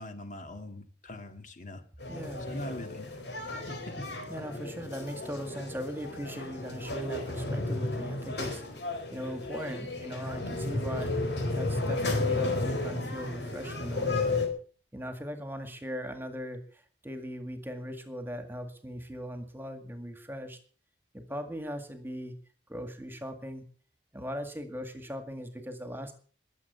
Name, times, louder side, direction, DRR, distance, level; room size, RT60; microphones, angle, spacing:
voice 1, 0.0-2.1 2.5-3.2 3.7-4.1, left 1 dB, 45° left, 6 dB, 2.1 m, -42 dB
sound 1, 2.0-14.5, left 2 dB, 75° left, 4.4 m, -33 dB
voice 2, 2.1-2.5 4.3-11.2 11.5-14.3 14.9-20.6 21.1-22.3 22.7-23.6 24.1-26.2, equal, 10° right, 7 dB, 2.0 m, -39 dB
21.5 x 7.9 x 6.9 m, 0.43 s
head